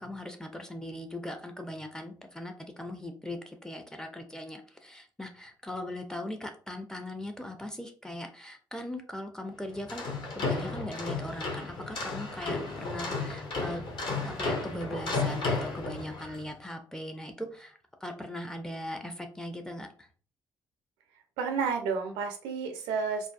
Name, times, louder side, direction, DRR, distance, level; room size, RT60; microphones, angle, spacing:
voice 1, 0.0-10.0 10.4-13.8 14.2-20.1, left 1 dB, 5° left, 4 dB, 0.5 m, -39 dB
sound 1, 9.7-16.4, left 3 dB, 45° left, 0.8 m, -33 dB
voice 2, 21.4-23.3, right 5 dB, 65° right, 4 dB, 0.5 m, -31 dB
2.5 x 2.2 x 2.3 m, 0.41 s
figure-of-eight pair, 40°, 11 cm